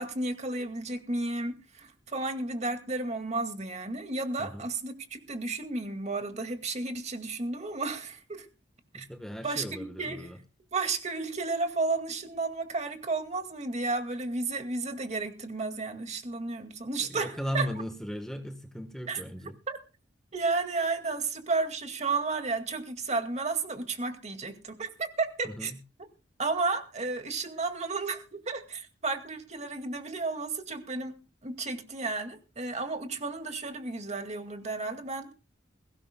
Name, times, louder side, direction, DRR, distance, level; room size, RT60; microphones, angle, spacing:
voice 1, 0.0-8.5 8.9-9.1 9.4-10.3 10.7-17.7 19.1-19.2 19.7-19.8 20.3-25.7 26.0-26.1 26.4-31.1 31.4-35.3, right 3 dB, 40° right, 6 dB, 2.1 m, -32 dB
voice 2, 8.9-10.4 17.0-19.6 25.4-25.8, equal, 5° left, 6 dB, 1.2 m, -37 dB
21.5 x 17.0 x 2.2 m, 0.32 s
head